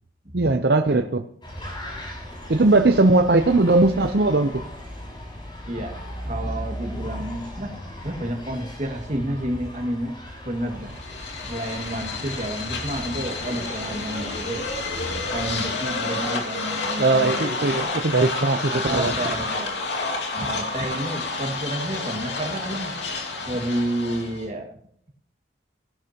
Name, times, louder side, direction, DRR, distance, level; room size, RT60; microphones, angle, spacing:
voice 1, 0.3-1.2 2.5-4.6 17.0-19.1, right 2 dB, 60° right, 6 dB, 0.7 m, -19 dB
sound 1, 1.4-15.6, equal, 25° left, 5.7 m, -37 dB
voice 2, 5.7-7.7 8.0-10.2 10.4-11.0 11.3-17.9 18.7-19.7 20.3-23.0 23.4-24.7, right 1 dB, 40° right, 3 dB, 2.1 m, -30 dB
sound 2, 10.9-24.5, left 3 dB, 75° left, 2.7 m, -30 dB
18.0 x 11.0 x 2.9 m, 0.68 s
head